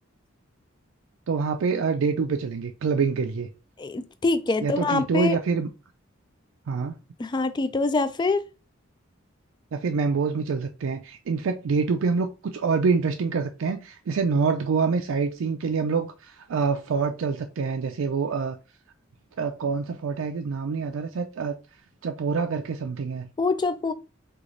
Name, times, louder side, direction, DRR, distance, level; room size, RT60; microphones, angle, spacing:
voice 1, 1.3-3.5 4.6-5.7 6.7-6.9 9.7-18.6 19.4-21.6 22.0-23.3, right 5 dB, 75° right, 0.4 m, -26 dB
voice 2, 3.8-5.4 7.2-8.5 23.4-23.9, left 3 dB, 20° left, 0.3 m, -25 dB
3.1 x 2.4 x 3.8 m
head